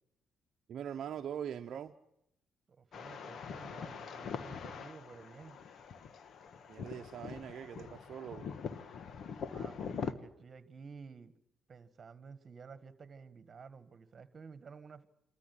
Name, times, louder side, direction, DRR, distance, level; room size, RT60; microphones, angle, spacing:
voice 1, 0.7-1.9 6.7-8.5, right 9 dB, 65° right, 0.8 m, -42 dB
voice 2, 2.7-5.6 9.4-11.3 11.7-15.1, right 5 dB, 40° right, 1.7 m, -52 dB
sound 1, 2.9-10.1, left 6 dB, 60° left, 1.3 m, -43 dB
27.0 x 14.0 x 9.9 m
cardioid pair, 90°, 0 cm